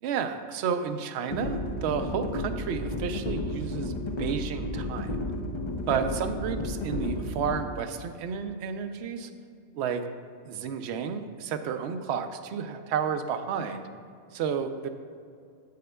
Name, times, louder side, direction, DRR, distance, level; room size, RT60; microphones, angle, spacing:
voice 1, 0.0-3.9 4.2-5.1 5.9-9.3 9.7-10.1 10.5-13.9 14.3-14.9, right 7 dB, 65° right, 8 dB, 0.8 m, -31 dB
sound 1, 1.3-7.6, left 1 dB, 40° left, 0.4 m, -32 dB
10.5 x 8.5 x 2.2 m, 2.3 s
omnidirectional pair, 1.3 m